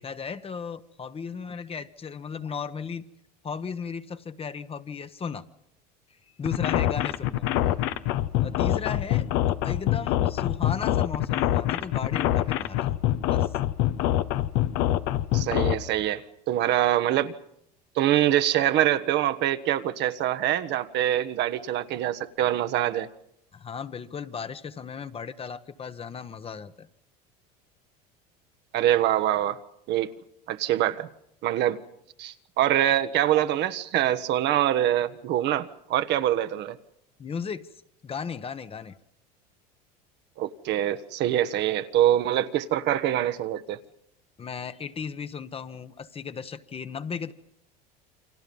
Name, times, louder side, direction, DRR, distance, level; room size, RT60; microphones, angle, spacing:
voice 1, 0.0-3.0 3.4-5.4 6.4-7.6 8.4-13.0 13.3-13.5 23.5-26.9 37.2-37.7 38.0-38.9 44.4-47.3, left 6 dB, 30° left, 1.2 m, -35 dB
sound 1, 6.4-15.7, left 13 dB, 70° left, 1.2 m, -24 dB
voice 2, 15.3-17.4 17.9-23.1 28.7-29.6 29.9-30.1 30.5-31.1 31.4-31.8 32.2-36.8 40.4-43.8, right 12 dB, 55° right, 1.3 m, -24 dB
29.0 x 25.0 x 5.5 m
hypercardioid pair, 90°, 21 cm